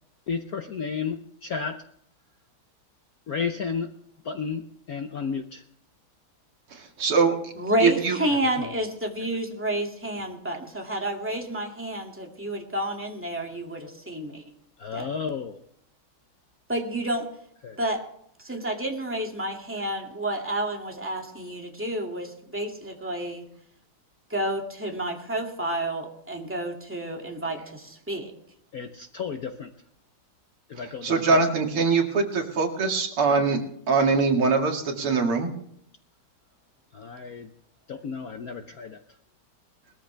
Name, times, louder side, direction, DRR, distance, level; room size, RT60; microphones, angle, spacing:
voice 1, 0.3-1.8 3.3-3.9 4.2-5.6 8.3-8.7 14.8-15.6 17.6-17.8 28.7-29.7 30.7-31.4 36.9-37.5 37.9-39.0, left 6 dB, 60° left, 6 dB, 1.0 m, -33 dB
voice 2, 6.7-7.5 7.8-8.2 31.0-35.5, right 4 dB, 80° right, 2 dB, 3.0 m, -23 dB
voice 3, 7.6-14.4 14.9-15.1 16.7-17.3 17.8-18.0 18.4-23.5 24.3-28.3, right 1 dB, 5° right, 1 dB, 2.2 m, -30 dB
21.0 x 14.0 x 3.4 m, 0.70 s
omnidirectional pair, 2.4 m